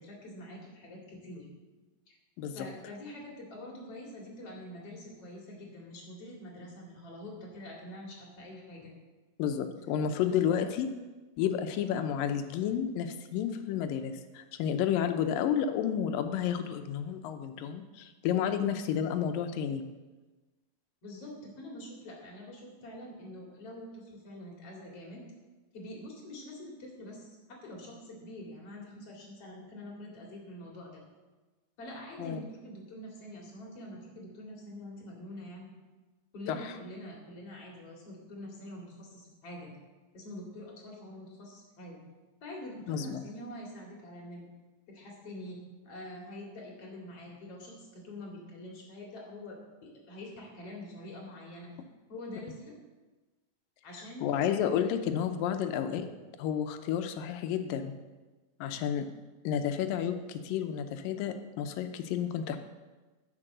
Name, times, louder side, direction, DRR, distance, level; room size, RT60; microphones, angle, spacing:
voice 1, 0.0-1.5 2.1-2.2 2.5-8.9 10.2-10.5 21.0-25.2 25.7-31.0 31.8-35.7 36.3-39.7 40.1-42.0 42.4-44.5 44.9-45.6 45.8-51.7 52.1-52.7 53.8-54.3, left 1 dB, 45° left, -1 dB, 3.1 m, -45 dB
voice 2, 9.4-10.9 11.4-19.8 32.2-32.4 36.5-36.7 42.9-43.2 54.2-56.1 56.4-57.9 58.6-59.1 59.4-62.6, left 9 dB, 90° left, 8 dB, 2.5 m, -31 dB
9.9 x 6.9 x 6.6 m, 1.2 s
omnidirectional pair, 3.9 m